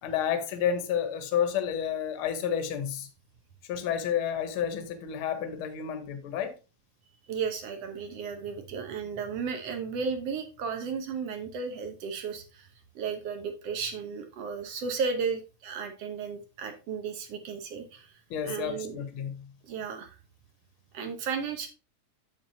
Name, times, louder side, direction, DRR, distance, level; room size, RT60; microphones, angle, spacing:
voice 1, 0.0-3.1 3.7-6.5 18.3-19.5, left 8 dB, 60° left, 1.5 m, -30 dB
voice 2, 7.3-12.7 13.0-18.2 18.4-19.0 19.6-20.2 20.9-21.7, right 5 dB, 65° right, 1.9 m, -34 dB
7.3 x 7.2 x 2.7 m
omnidirectional pair, 3.3 m